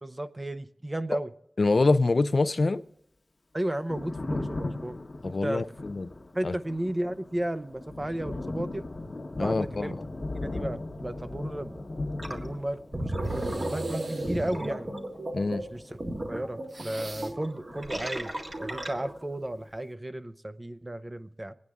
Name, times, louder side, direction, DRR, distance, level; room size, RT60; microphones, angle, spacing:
voice 1, 0.0-1.3 3.5-5.0 5.2-5.7 6.3-8.8 9.4-10.0 10.4-11.8 12.3-14.9 15.5-16.0 16.3-18.3 18.6-21.5, right 1 dB, 30° right, 0.7 m, -34 dB
voice 2, 1.6-2.8 5.2-6.1 6.4-6.5 9.4-10.0 15.3-15.6, left 3 dB, 75° left, 0.5 m, -25 dB
Thunder, 3.7-18.1 18.4-19.6, left 2 dB, 55° left, 1.1 m, -39 dB
Gurgling, 12.2-12.4 12.8-19.3, right 1 dB, 55° right, 1.8 m, -34 dB
sound 1, 13.2-14.6 16.7-17.5, right 2 dB, 75° right, 0.9 m, -46 dB
24.0 x 9.6 x 3.6 m
wide cardioid pair, 60°, 0 cm